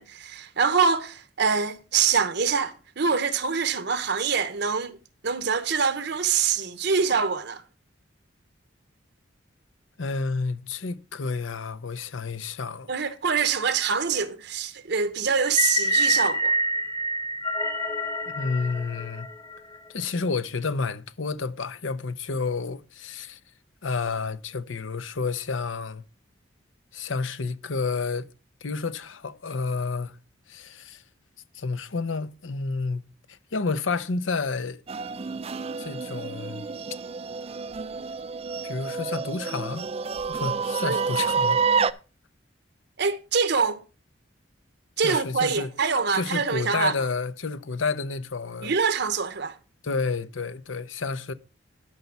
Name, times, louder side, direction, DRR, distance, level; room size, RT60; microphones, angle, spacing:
voice 1, 0.0-5.0 5.2-7.6 12.9-16.5 40.8-41.0 43.0-43.8 45.0-46.9 48.6-49.6, right 5 dB, 60° right, 0.8 m, -25 dB
voice 2, 10.0-12.9 18.3-19.3 19.9-23.4 23.8-26.0 26.9-28.3 28.6-30.2 30.5-31.0 31.5-34.8 35.8-36.7 38.6-39.9 40.3-41.9 45.0-45.7 46.1-48.8 49.8-51.3, left 4 dB, 85° left, 0.8 m, -30 dB
sound 1, 15.4-19.8, equal, 15° left, 1.1 m, -26 dB
sound 2, 34.9-41.9, right 5 dB, 30° right, 0.4 m, -28 dB
12.0 x 5.6 x 4.6 m
head